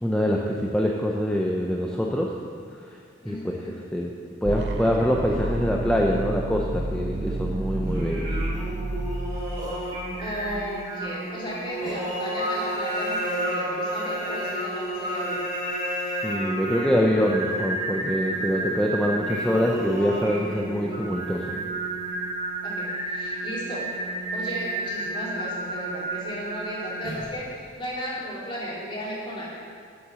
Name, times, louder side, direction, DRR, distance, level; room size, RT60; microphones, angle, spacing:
voice 1, 0.0-2.3 3.2-3.4 3.9-4.1 4.4-8.3 16.2-21.5, equal, 5° left, -1 dB, 0.7 m, -24 dB
voice 2, 3.2-3.7 10.2-15.4 20.7-21.1 22.6-23.9 24.3-29.5, equal, 30° left, -6 dB, 3.2 m, -35 dB
sound 1, 4.5-10.4, right 2 dB, 70° right, 0.9 m, -30 dB
Singing, 7.8-27.4, right 1 dB, 20° right, 3.3 m, -31 dB
12.0 x 7.0 x 6.3 m, 2.3 s
head